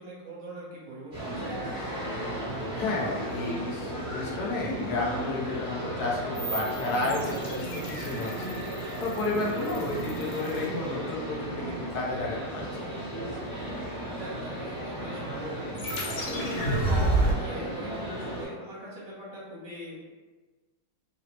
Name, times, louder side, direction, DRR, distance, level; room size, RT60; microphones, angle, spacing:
voice 1, 0.0-1.6 9.5-9.8 14.1-15.8 16.2-20.0, right 1 dB, 60° right, -6 dB, 1.5 m, -40 dB
sound 1, 1.1-18.4, equal, 25° right, 1.1 m, -35 dB
voice 2, 2.8-8.5 9.0-12.9, left 2 dB, 65° left, -4 dB, 1.0 m, -32 dB
sound 2, 6.3-11.4 15.8-17.3, right 2 dB, 85° left, 1.7 m, -31 dB
sound 3, 7.0-12.0, right 2 dB, 80° right, 1.4 m, -41 dB
3.9 x 2.1 x 2.9 m, 1.3 s
omnidirectional pair, 2.4 m